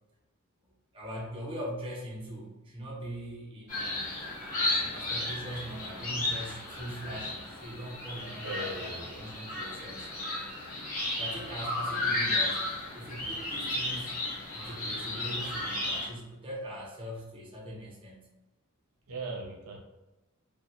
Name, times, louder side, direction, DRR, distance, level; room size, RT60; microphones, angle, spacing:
voice 1, 0.6-4.1 4.6-10.1 11.2-12.6 12.9-14.1 14.5-18.3, equal, 25° right, -4 dB, 0.7 m, -41 dB
sound 1, 3.7-16.1, left 2 dB, 40° left, 0.9 m, -34 dB
voice 2, 8.4-9.2 19.1-19.8, right 2 dB, 80° right, -1 dB, 0.7 m, -39 dB
2.8 x 2.5 x 2.4 m, 1.0 s
head